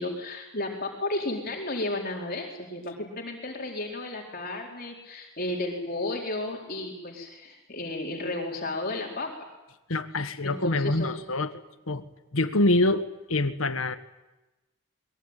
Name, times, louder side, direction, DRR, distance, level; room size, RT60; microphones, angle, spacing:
voice 1, 0.0-9.3 10.4-11.2, left 2 dB, 45° left, 0 dB, 4.4 m, -33 dB
voice 2, 9.9-11.5 11.9-12.0 12.3-13.9, left 2 dB, 70° left, 11 dB, 1.6 m, -25 dB
23.0 x 22.5 x 9.2 m, 1.0 s
head